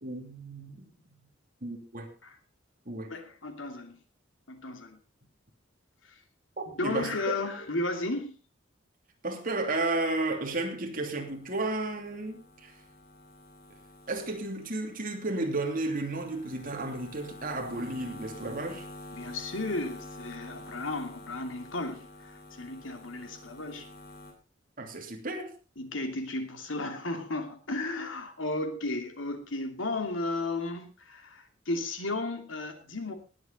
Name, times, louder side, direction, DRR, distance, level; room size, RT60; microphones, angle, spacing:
voice 1, 0.0-0.9 1.6-2.1 2.9-3.1 6.6-7.4 9.2-12.7 14.1-18.9 24.8-25.5, right 2 dB, 45° right, 2.9 m, -33 dB
voice 2, 3.1-4.0 4.5-5.0 6.0-6.2 6.7-8.3 19.1-22.3 22.6-23.9 25.8-33.1, left 2 dB, 80° left, 2.6 m, -34 dB
sound 1, 11.2-24.3, left 1 dB, 60° left, 4.6 m, -48 dB
19.5 x 8.3 x 4.1 m
head